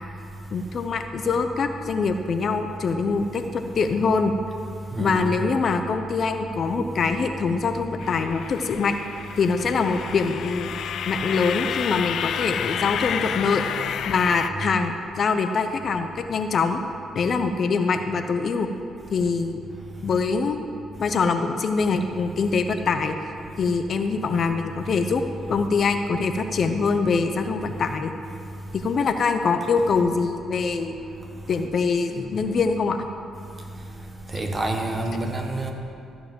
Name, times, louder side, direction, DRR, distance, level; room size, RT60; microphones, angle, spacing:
voice 1, 0.5-4.3 5.0-8.9 9.4-10.7 11.1-13.6 14.0-16.8 17.1-18.7 19.1-19.6 20.0-20.7 21.0-23.1 23.6-25.2 25.5-28.1 28.8-31.0 31.5-33.1, left 4 dB, 50° left, 0.7 m, -24 dB
voice 2, 4.9-5.3 34.3-35.7, right 2 dB, 25° right, 1.4 m, -27 dB
sound 1, 8.0-14.5, left 9 dB, 70° left, 0.3 m, -30 dB
14.0 x 4.7 x 7.6 m
cardioid pair, 90°, 0 cm